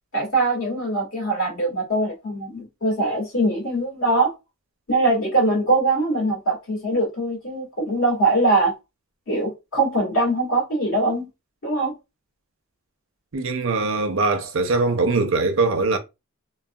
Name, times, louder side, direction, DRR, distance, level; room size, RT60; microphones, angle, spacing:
voice 1, 0.1-4.3 4.9-8.7 9.3-11.3 11.6-11.9, right 2 dB, 70° left, 1.7 m, -22 dB
voice 2, 13.3-16.0, right 3 dB, 65° right, 0.6 m, -21 dB
3.8 x 2.1 x 2.2 m
head